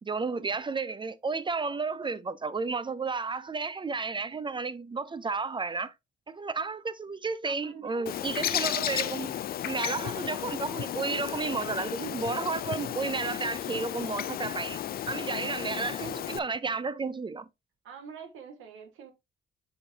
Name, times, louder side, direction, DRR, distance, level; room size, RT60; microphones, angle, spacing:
voice 1, 0.0-5.9 6.3-9.4 9.7-17.5, right 4 dB, 25° right, 0.4 m, -32 dB
voice 2, 7.5-8.2 11.1-11.3 17.8-19.1, right 6 dB, 85° right, 1.7 m, -46 dB
Bird, 8.1-16.4, left 11 dB, 50° left, 0.4 m, -33 dB
7.8 x 4.8 x 2.7 m
cardioid pair, 90°, 20 cm